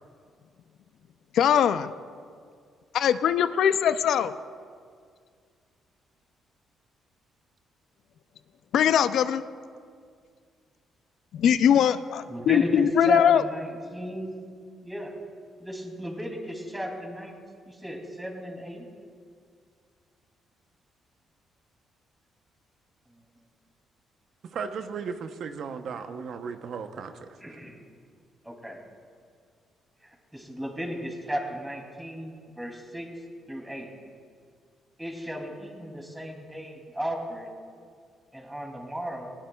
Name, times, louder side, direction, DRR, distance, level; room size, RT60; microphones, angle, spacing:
voice 1, 1.3-1.9 2.9-4.3 8.7-9.4 11.3-13.4, left 9 dB, 75° left, 12 dB, 0.4 m, -21 dB
voice 2, 12.3-14.4 14.8-15.1 15.6-17.4 17.7-18.8 27.4-27.8 28.4-28.8 30.0-33.1 33.5-33.9 35.0-37.5 38.3-39.3, equal, 5° right, 1 dB, 2.7 m, -34 dB
voice 3, 24.5-27.1, right 6 dB, 65° right, 7 dB, 0.7 m, -35 dB
19.5 x 16.0 x 2.3 m, 2.1 s
cardioid pair, 90°, 0 cm